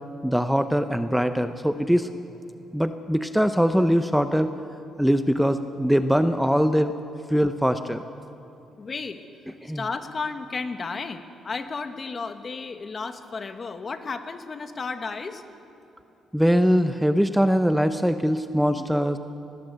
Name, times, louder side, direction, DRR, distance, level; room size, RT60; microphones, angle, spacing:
voice 1, 0.2-2.1 2.7-4.5 5.0-6.9 7.3-8.0 9.6-9.8 16.3-19.2, equal, ahead, 9 dB, 0.8 m, -22 dB
voice 2, 8.8-9.2 9.7-15.4, left 4 dB, 40° left, 7 dB, 1.6 m, -33 dB
20.5 x 19.0 x 8.1 m, 3.0 s
cardioid pair, 90°, 0 cm